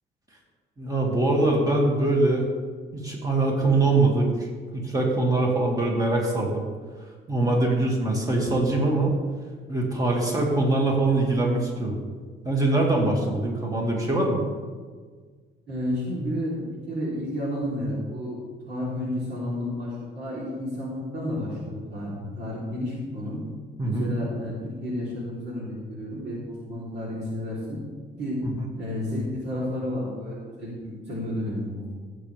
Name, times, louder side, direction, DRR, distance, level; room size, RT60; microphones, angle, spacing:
voice 1, 0.8-2.5 2.9-6.6 7.3-9.1 9.7-12.0 12.4-14.4 23.8-24.1 28.4-28.6, right 2 dB, 20° right, -1 dB, 2.3 m, -23 dB
voice 2, 15.7-18.4 18.7-23.4 23.8-27.8 28.2-28.4 28.8-31.9, left 1 dB, 65° right, -6 dB, 3.5 m, -31 dB
16.5 x 7.9 x 3.4 m, 1.5 s
cardioid pair, 130°, 19 cm